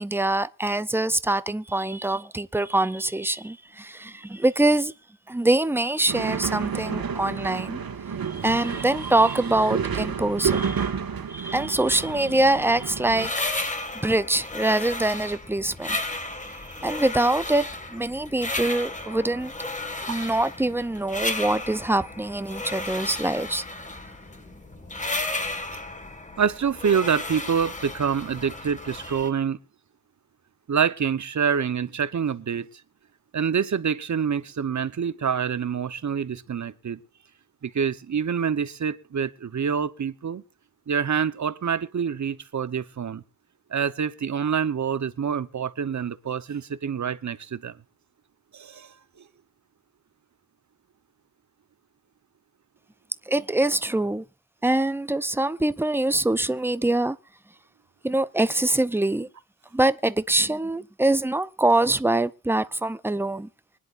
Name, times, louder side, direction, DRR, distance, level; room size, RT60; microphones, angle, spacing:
voice 1, 0.0-4.9 5.3-7.8 8.4-10.9 11.3-13.7 14.0-16.0 16.8-19.5 20.1-23.6 53.3-54.2 54.6-57.2 58.0-59.3 59.7-63.5, right 2 dB, 5° right, 0.5 m, -24 dB
sound 1, 6.1-13.3, right 6 dB, 75° right, 1.8 m, -30 dB
sound 2, 11.9-29.3, left 2 dB, 20° left, 1.7 m, -34 dB
voice 2, 26.4-29.6 30.7-32.7 33.3-37.0 37.6-40.4 40.9-43.2 43.7-47.7 48.5-48.9, right 7 dB, 50° right, 1.0 m, -26 dB
24.5 x 10.5 x 2.5 m
wide cardioid pair, 140°, 36 cm